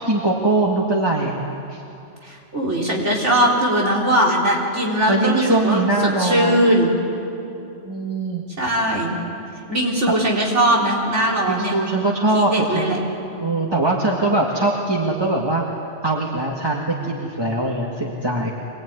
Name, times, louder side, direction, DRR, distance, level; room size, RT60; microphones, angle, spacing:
voice 1, 0.0-1.3 1.7-1.8 5.1-6.6 7.8-8.4 10.1-10.2 11.5-12.9 13.4-15.6 16.0-18.5, right 2 dB, 20° right, -3 dB, 1.8 m, -21 dB
voice 2, 2.2-6.9 8.6-9.1 9.7-11.7 12.3-13.0, right 1 dB, 75° right, -2 dB, 4.1 m, -20 dB
25.5 x 20.0 x 9.5 m, 2.7 s
omnidirectional pair, 1.2 m